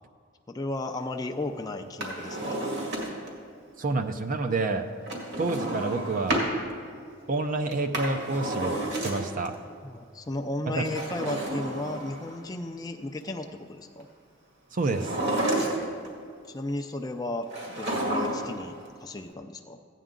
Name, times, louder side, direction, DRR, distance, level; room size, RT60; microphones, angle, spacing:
voice 1, 0.5-2.6 9.8-14.1 16.5-17.5 17.8-19.8, left 2 dB, 20° left, 4 dB, 0.4 m, -34 dB
Drawer open or close, 1.8-3.4 5.1-6.5 7.7-9.5 10.7-12.4 14.8-16.1 17.5-18.6 18.9-19.0, right 1 dB, 60° right, 2.1 m, -31 dB
voice 2, 3.8-4.9 5.4-6.4 7.3-9.6 10.7-10.9 14.7-15.1, right 3 dB, 40° right, 7 dB, 0.6 m, -28 dB
15.0 x 9.2 x 3.8 m, 2.2 s
head